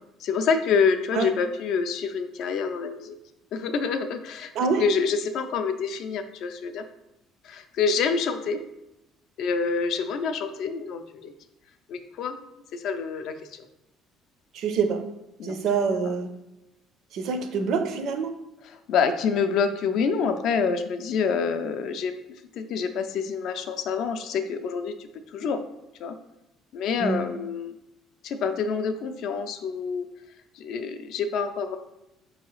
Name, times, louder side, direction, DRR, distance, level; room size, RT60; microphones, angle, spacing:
voice 1, 0.0-3.2 3.5-4.5 4.8-6.8 7.4-8.6 9.4-11.3 11.9-12.4 12.7-13.6 15.4-15.6 18.9-22.1 22.6-25.6 26.0-26.1 26.7-27.7 28.2-30.1 30.5-31.8, left 5 dB, 60° left, 8 dB, 0.4 m, -27 dB
voice 2, 14.5-15.0 15.4-16.3 17.1-18.3 27.0-27.2, right 5 dB, 60° right, 8 dB, 0.4 m, -26 dB
4.6 x 2.7 x 3.0 m, 0.90 s
cardioid pair, 130°, 0 cm